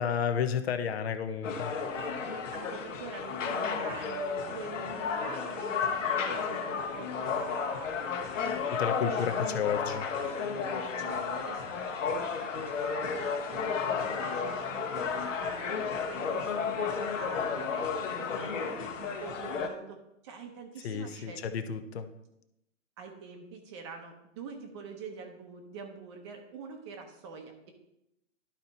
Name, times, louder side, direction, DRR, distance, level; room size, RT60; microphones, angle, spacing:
voice 1, 0.0-1.7 8.7-10.1 20.8-22.1, left 7 dB, 50° left, 9 dB, 0.8 m, -32 dB
sound 1, 1.4-19.7, left 5 dB, 70° left, 1.4 m, -33 dB
voice 2, 2.0-8.0 8.4-9.6 10.8-20.0 20.2-21.4 23.0-27.7, right 5 dB, 20° right, 4 dB, 0.7 m, -46 dB
11.5 x 4.3 x 4.0 m, 0.84 s
hypercardioid pair, 155°, 39 cm